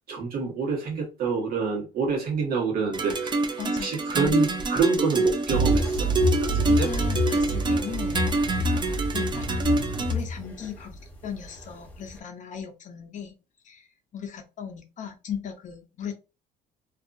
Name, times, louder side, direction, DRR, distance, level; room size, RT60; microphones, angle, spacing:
voice 1, 0.1-3.5 3.8-6.1 6.4-6.9, right 5 dB, 60° right, 1.3 m, -27 dB
sound 1, 2.9-10.1, right 3 dB, 25° right, 0.4 m, -26 dB
voice 2, 3.6-3.9 6.6-8.6 9.1-9.5 10.1-11.0 11.2-13.3 13.6-13.9 14.1-16.1, left 7 dB, 45° left, 0.7 m, -37 dB
sound 2, 5.5-12.2, left 1 dB, 10° left, 0.9 m, -28 dB
2.6 x 2.5 x 2.5 m
cardioid pair, 110°, 17 cm